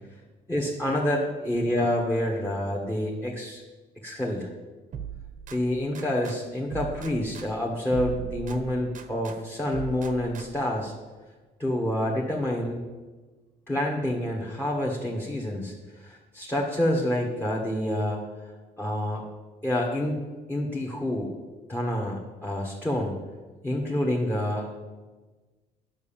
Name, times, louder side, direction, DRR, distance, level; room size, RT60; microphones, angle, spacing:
voice 1, 0.5-3.6 4.0-4.5 5.5-10.9 11.6-12.8 13.7-15.7 16.0-18.3 18.8-19.2 19.6-20.2 20.5-21.3 21.7-23.2 23.6-24.7, left 1 dB, 10° left, -1 dB, 1.6 m, -28 dB
sound 1, 4.9-6.4 6.7-9.4 9.7-10.8, right 8 dB, 50° right, 1.1 m, -39 dB
9.5 x 6.3 x 7.2 m, 1.3 s
cardioid pair, 110°, 17 cm